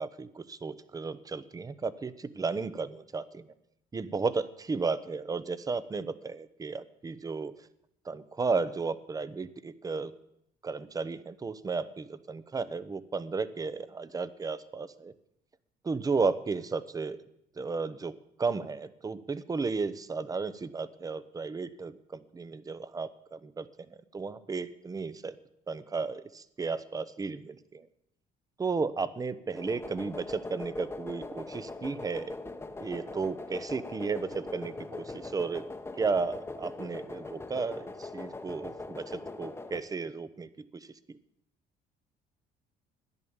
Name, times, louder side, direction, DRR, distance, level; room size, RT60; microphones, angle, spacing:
voice 1, 0.0-3.4 3.9-7.5 8.0-10.1 10.6-15.1 15.8-17.2 17.6-18.1 18.4-25.3 25.7-27.9 28.6-32.3 32.8-35.6 36.0-41.2, right 4 dB, 20° right, 14 dB, 0.8 m, -34 dB
sound 1, 29.5-39.8, left 3 dB, 15° left, 1.0 m, -41 dB
14.5 x 10.5 x 7.2 m, 0.79 s
cardioid pair, 110°, 17 cm